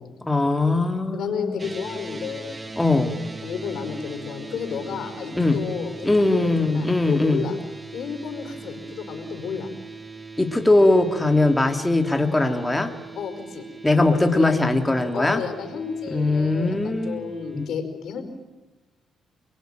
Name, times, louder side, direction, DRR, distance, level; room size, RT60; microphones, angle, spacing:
voice 1, 0.2-1.6 2.8-3.1 5.4-5.6 6.0-7.4 10.4-13.0 13.8-15.4 16.1-17.2 17.5-17.6, left 2 dB, 10° left, 5 dB, 2.7 m, -20 dB
voice 2, 1.1-2.6 3.4-7.6 7.9-9.7 13.1-14.5 15.1-18.2, left 6 dB, 70° left, 7 dB, 5.0 m, -32 dB
sound 1, 1.6-17.7, right 3 dB, 20° right, 1.9 m, -40 dB
29.0 x 22.0 x 9.2 m, 1.1 s
cardioid pair, 90°, 0 cm